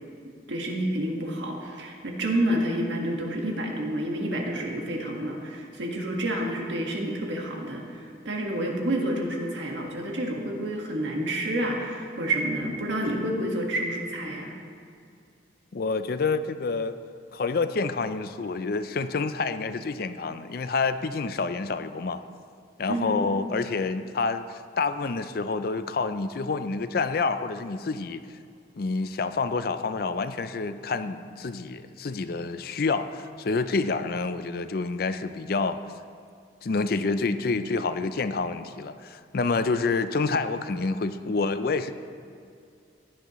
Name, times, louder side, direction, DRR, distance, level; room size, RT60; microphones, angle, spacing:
voice 1, 0.5-14.5 22.9-23.4, right 1 dB, 70° right, 0 dB, 1.7 m, -29 dB
voice 2, 15.7-17.0 17.3-22.2 22.8-28.2 28.8-35.8 36.6-41.9, left 4 dB, 50° left, 11 dB, 0.4 m, -28 dB
15.5 x 10.5 x 3.1 m, 2.5 s
head